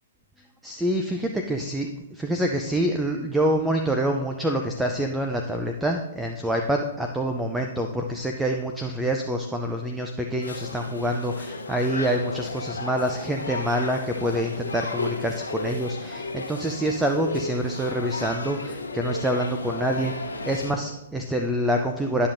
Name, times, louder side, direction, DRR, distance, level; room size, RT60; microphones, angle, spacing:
voice 1, 0.6-20.1 20.4-22.3, right 1 dB, 5° right, 3 dB, 0.5 m, -26 dB
sound 1, 10.4-20.7, left 3 dB, 85° left, 1.0 m, -34 dB
11.5 x 5.7 x 2.6 m, 0.92 s
hypercardioid pair, 125°, 0 cm